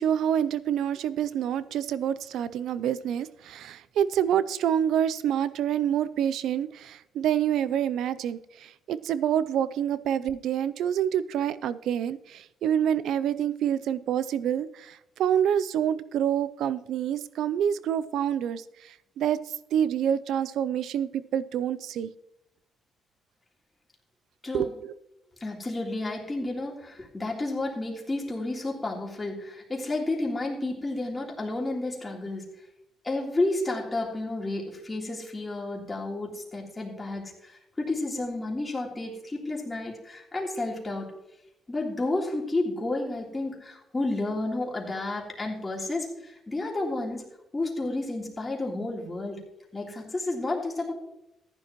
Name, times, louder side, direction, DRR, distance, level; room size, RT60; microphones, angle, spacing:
voice 1, 0.0-19.4 19.7-22.1 24.5-24.9, right 9 dB, 80° right, 16 dB, 0.4 m, -27 dB
voice 2, 25.4-32.5 33.0-41.1 41.7-47.3 47.5-49.4 49.7-50.9, left 2 dB, 20° left, -2 dB, 3.3 m, -31 dB
15.0 x 10.5 x 3.0 m, 0.84 s
cardioid pair, 90°, 0 cm